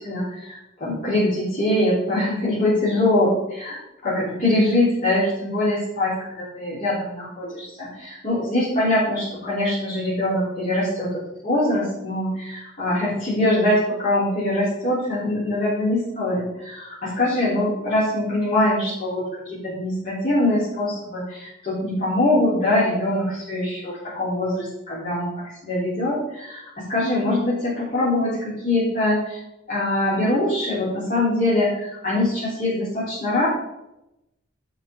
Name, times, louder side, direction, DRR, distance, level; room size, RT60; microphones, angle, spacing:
voice 1, 0.0-11.1 11.4-25.3 25.6-29.4 29.7-33.5, left 1 dB, 45° left, -10 dB, 4.1 m, -23 dB
12.0 x 4.9 x 5.5 m, 0.89 s
head